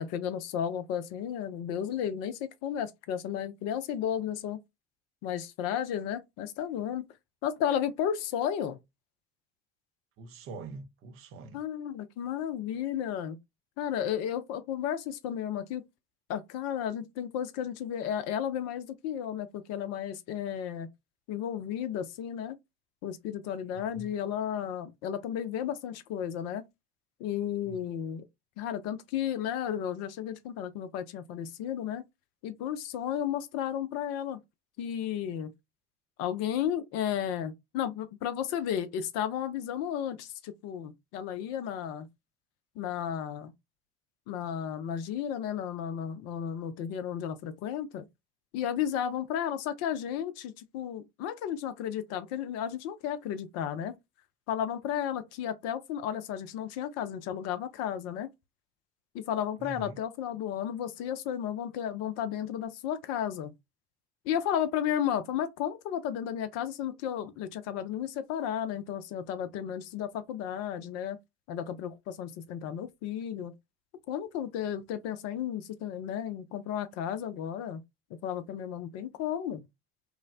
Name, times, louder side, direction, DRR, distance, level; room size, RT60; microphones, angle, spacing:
voice 1, 0.0-4.6 5.2-7.1 7.4-8.8 11.5-13.4 13.8-15.8 16.3-20.9 21.3-22.6 23.0-26.6 27.2-28.2 28.6-32.0 32.4-34.4 34.8-35.5 36.2-42.1 42.8-43.5 44.3-48.0 48.5-53.9 54.5-58.3 59.1-63.5 64.3-71.2 71.5-73.5 74.1-77.8 78.2-79.6, left 9 dB, 50° left, 0.5 m, -33 dB
voice 2, 10.2-11.6 23.9-24.1 27.6-28.0 59.6-60.0, right 3 dB, 40° right, 0.6 m, -44 dB
3.0 x 2.0 x 2.4 m
figure-of-eight pair, 60°, 34 cm